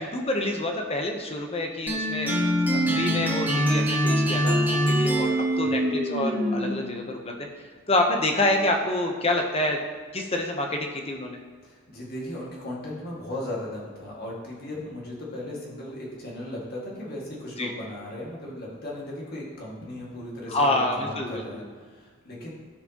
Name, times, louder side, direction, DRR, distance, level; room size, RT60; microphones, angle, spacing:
voice 1, 0.0-2.3 2.7-7.3 7.9-9.8 10.1-11.4 17.6-17.7 20.5-21.6, left 1 dB, 25° left, 3 dB, 0.8 m, -27 dB
sound 1, 1.9-7.0, equal, 10° right, 0.8 m, -24 dB
voice 2, 5.5-5.8 11.6-22.5, left 1 dB, 45° left, -4 dB, 1.9 m, -37 dB
14.5 x 5.0 x 2.9 m, 1.5 s
head